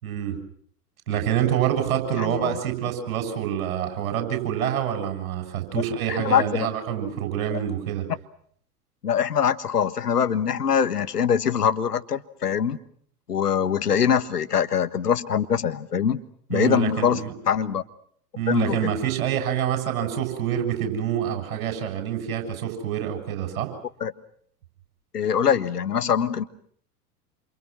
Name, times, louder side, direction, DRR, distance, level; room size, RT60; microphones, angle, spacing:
voice 1, 0.0-0.4 1.1-8.1 16.5-17.3 18.4-23.7, right 9 dB, 60° right, 6 dB, 7.5 m, -26 dB
voice 2, 6.1-6.7 7.5-7.6 9.0-12.8 13.3-16.2 16.5-17.2 17.5-17.8 18.5-18.9 24.0-24.1 25.1-26.4, left 8 dB, 80° left, 12 dB, 1.5 m, -23 dB
28.5 x 27.5 x 6.2 m, 0.63 s
figure-of-eight pair, 90°, 46 cm